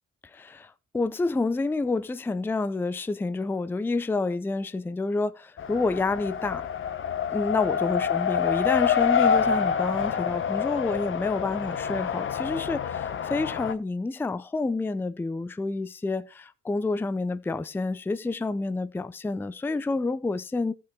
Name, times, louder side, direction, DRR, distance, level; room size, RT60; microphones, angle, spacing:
voice 1, 0.3-6.7 7.3-20.7, left 3 dB, 5° left, 0.4 m, -29 dB
Race car auto racing, 5.6-13.7, left 7 dB, 45° left, 0.9 m, -27 dB
15.0 x 6.1 x 3.5 m
cardioid pair, 90°, 30 cm